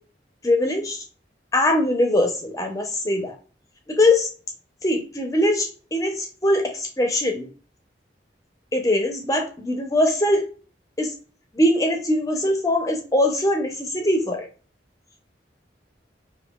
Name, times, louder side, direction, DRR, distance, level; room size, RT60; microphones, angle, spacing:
voice 1, 0.4-1.0 1.5-3.4 3.9-4.3 4.8-7.5 8.7-10.4 11.0-11.1 11.5-14.5, left 1 dB, 20° left, 4 dB, 0.6 m, -22 dB
5.1 x 2.4 x 2.3 m, 0.38 s
head